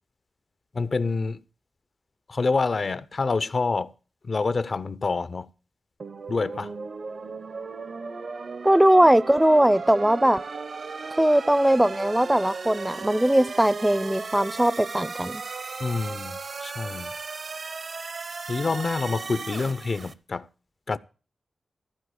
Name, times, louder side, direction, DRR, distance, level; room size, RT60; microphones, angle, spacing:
voice 1, 0.7-1.4 2.3-3.9 4.2-5.5 6.3-6.7 15.8-17.1 18.5-20.5 20.9-21.0, left 4 dB, 55° left, 0.5 m, -27 dB
sound 1, 6.0-20.1, right 4 dB, 65° right, 0.8 m, -36 dB
voice 2, 8.6-10.4 11.2-15.4, right 1 dB, 10° right, 0.4 m, -20 dB
14.5 x 4.8 x 8.0 m
cardioid pair, 50°, 0 cm